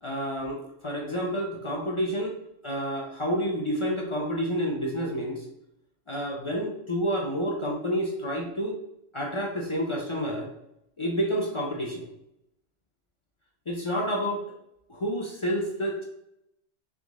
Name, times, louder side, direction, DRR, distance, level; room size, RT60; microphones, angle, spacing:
voice 1, 0.0-2.3 2.6-5.4 6.1-8.8 9.1-10.5 11.0-12.1 13.7-14.4 14.9-16.0, equal, 40° left, -1 dB, 0.4 m, -29 dB
3.7 x 3.0 x 3.5 m, 0.81 s
omnidirectional pair, 1.3 m